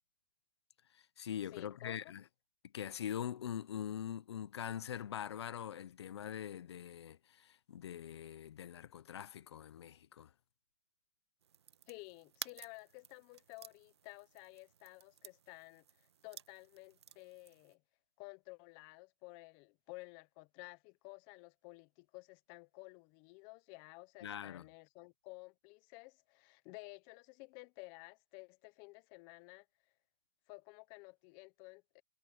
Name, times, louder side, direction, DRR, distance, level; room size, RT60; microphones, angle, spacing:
voice 1, 0.9-2.2 2.7-10.3 24.2-24.6, left 9 dB, 80° left, 0.7 m, -43 dB
voice 2, 1.5-2.1 11.9-17.8 18.2-29.7 30.5-32.0, left 26 dB, 35° left, 0.9 m, -54 dB
sound 1, 11.4-17.7, right 8 dB, 85° right, 1.3 m, -54 dB
hypercardioid pair, 145°, 14 cm